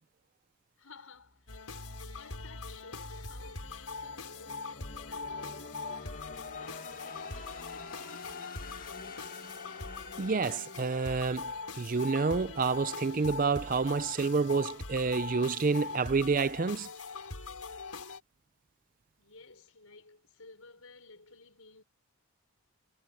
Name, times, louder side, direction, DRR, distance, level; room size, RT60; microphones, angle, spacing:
voice 1, 0.8-1.6 1.9-5.9 6.6-9.6 19.2-21.8, left 3 dB, 70° left, 5.4 m, -56 dB
sound 1, 1.2-12.2, left 4 dB, 40° left, 1.8 m, -49 dB
sound 2, 1.5-18.2, left 4 dB, 90° left, 5.3 m, -42 dB
voice 2, 10.2-16.9, right 4 dB, 40° right, 0.4 m, -29 dB
head